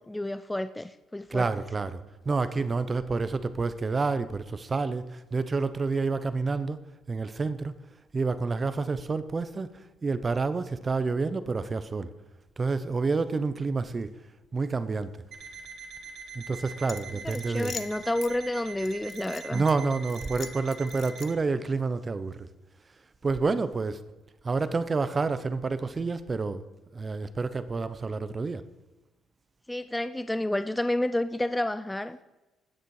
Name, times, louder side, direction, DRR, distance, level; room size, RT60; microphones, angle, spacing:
voice 1, 0.0-1.5 17.2-19.6 29.7-32.2, left 1 dB, 10° left, 12 dB, 0.4 m, -30 dB
voice 2, 1.3-6.8 7.1-7.7 8.1-9.7 10.0-12.1 12.6-14.1 14.5-15.1 16.3-17.7 19.5-22.5 23.2-24.0 24.4-26.6 26.9-28.6, right 4 dB, 30° right, 13 dB, 0.8 m, -28 dB
Alarm, 15.3-21.4, right 4 dB, 60° right, 2.5 m, -43 dB
sound 1, 16.9-18.3 18.8-19.7 20.1-21.5, left 7 dB, 50° left, 0.6 m, -43 dB
16.5 x 6.7 x 4.8 m, 1.1 s
cardioid pair, 80°, 0 cm